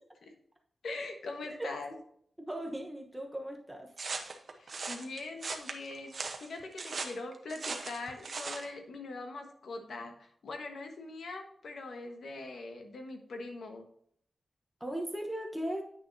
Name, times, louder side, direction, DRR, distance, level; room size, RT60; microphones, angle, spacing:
voice 1, 0.8-1.9 4.6-6.1 6.4-13.8, left 3 dB, 90° left, 4 dB, 1.4 m, -42 dB
voice 2, 2.4-3.9 14.8-15.8, right 1 dB, 5° right, 1 dB, 1.0 m, -37 dB
sound 1, 4.0-8.7, right 4 dB, 55° right, 0.9 m, -39 dB
9.3 x 6.3 x 2.7 m, 0.66 s
wide cardioid pair, 145°, 0 cm